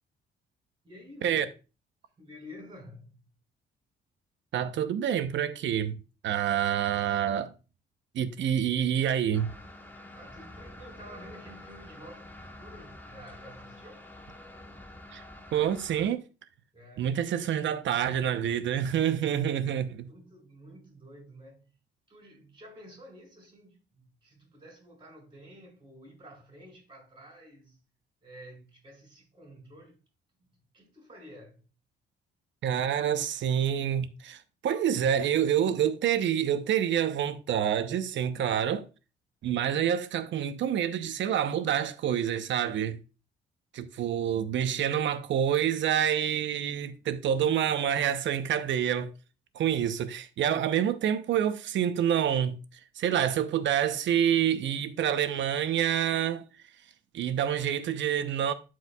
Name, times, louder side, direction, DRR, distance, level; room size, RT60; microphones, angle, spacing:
voice 1, 0.8-1.5 2.2-3.3 10.1-14.1 16.7-17.2 20.1-21.8 22.1-27.8 28.2-30.0 30.4-31.7, equal, 25° right, 4.4 m, -50 dB
voice 2, 4.5-6.0 6.2-7.5 8.1-9.5 15.1-15.2 15.5-16.2 17.0-20.1 32.6-38.9 39.4-43.0 43.7-49.1 49.5-52.6 53.0-56.4 57.1-58.5, right 9 dB, 70° right, 0.8 m, -27 dB
sound 1, 9.3-16.1, left 1 dB, 10° left, 1.1 m, -47 dB
12.0 x 4.8 x 2.3 m
cardioid pair, 90°, 20 cm